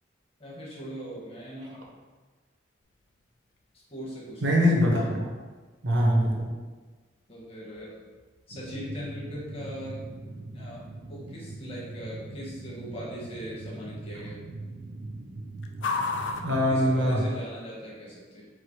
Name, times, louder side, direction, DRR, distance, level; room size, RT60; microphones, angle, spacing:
voice 1, 0.4-1.9 3.9-4.8 7.3-8.0 8.5-10.0 10.5-14.4 16.7-18.5, equal, 35° left, -6 dB, 1.2 m, -40 dB
sound 1, 2.8-17.6, left 4 dB, 85° left, 0.4 m, -42 dB
voice 2, 4.4-5.3 5.8-6.5 16.4-17.2, equal, 90° right, -1 dB, 0.9 m, -23 dB
sound 2, 8.5-17.1, right 2 dB, 55° right, 0.4 m, -41 dB
4.7 x 2.0 x 4.6 m, 1.3 s
head